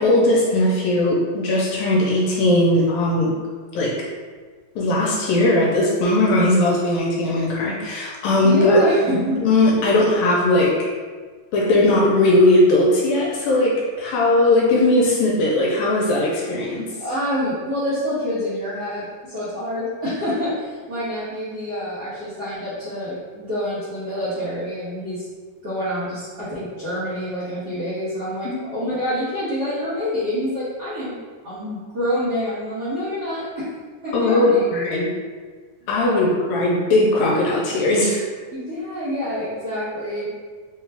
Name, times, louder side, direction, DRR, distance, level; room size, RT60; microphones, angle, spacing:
voice 1, 0.0-3.3 3.7-4.0 4.8-10.8 11.5-16.9 28.4-28.6 34.1-35.1 35.9-38.2, left 1 dB, 80° left, -3 dB, 1.8 m, -18 dB
voice 2, 8.4-9.4 17.0-25.2 25.6-31.2 31.4-33.7 34.0-34.7 36.0-36.3 38.5-40.3, equal, 60° right, -13 dB, 1.0 m, -27 dB
4.7 x 2.3 x 3.3 m, 1.5 s
omnidirectional pair, 3.5 m